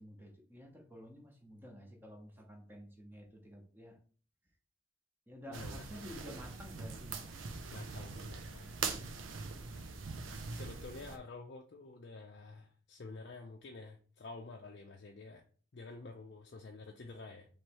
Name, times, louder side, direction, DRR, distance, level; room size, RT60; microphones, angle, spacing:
voice 1, 0.0-4.0 5.3-7.4, equal, 10° right, 1 dB, 0.8 m, -51 dB
voice 2, 5.5-6.2 7.7-8.7 9.8-9.9 10.5-15.4 15.7-17.5, left 3 dB, 55° left, 1 dB, 0.5 m, -49 dB
sound 1, 5.5-11.2, right 4 dB, 85° right, 0.6 m, -42 dB
3.1 x 3.1 x 4.5 m, 0.42 s
head